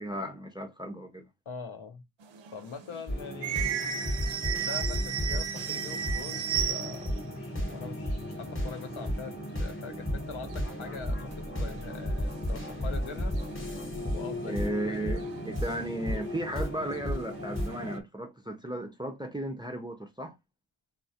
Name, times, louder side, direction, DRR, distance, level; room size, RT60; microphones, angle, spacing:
voice 1, 0.0-1.3 14.5-20.3, right 1 dB, 10° right, 0.3 m, -35 dB
voice 2, 1.5-2.0 2.5-3.7 4.4-9.3 9.6-13.3 14.1-15.0, left 5 dB, 75° left, 0.7 m, -43 dB
sound 1, 2.2-7.2 7.5-7.6 7.8-9.2 9.7-9.8 10.0-10.5 11.3-11.4 12.0-12.9 13.4-13.5 14.6-14.7 15.2-16.6 16.9-17.9, right 9 dB, 65° right, 0.5 m, -35 dB
sound 2, 3.1-18.0, equal, 25° left, 0.9 m, -34 dB
2.3 x 2.0 x 2.6 m
cardioid pair, 45°, 49 cm